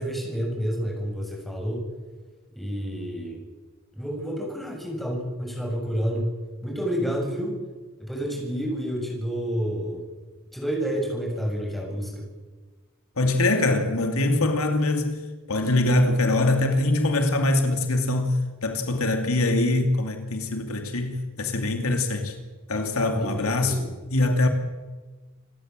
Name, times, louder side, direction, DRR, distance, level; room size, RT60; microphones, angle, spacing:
voice 1, 0.0-1.9 2.6-3.4 4.0-6.4 6.6-7.6 8.0-10.0 10.5-12.3 23.1-23.9, equal, ahead, 7.4 m, -29 dB
voice 2, 13.2-22.4 22.7-23.8 24.1-24.5, left 2 dB, 85° left, 2.6 m, -23 dB
28.0 x 14.0 x 7.6 m
head